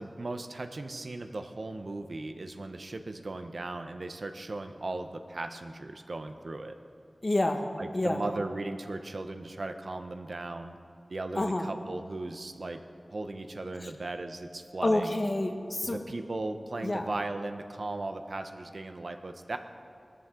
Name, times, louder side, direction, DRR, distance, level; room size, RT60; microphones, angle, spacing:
voice 1, 0.0-6.8 7.8-10.8 11.1-12.8 13.1-15.2 15.8-19.6, right 2 dB, 65° right, 7 dB, 0.8 m, -37 dB
voice 2, 7.2-7.7 7.9-8.2 11.3-11.7 13.8-13.9 14.8-16.0 16.8-17.1, left 1 dB, 40° left, 4 dB, 1.3 m, -28 dB
19.0 x 13.0 x 3.8 m, 2.4 s
wide cardioid pair, 70°, 0 cm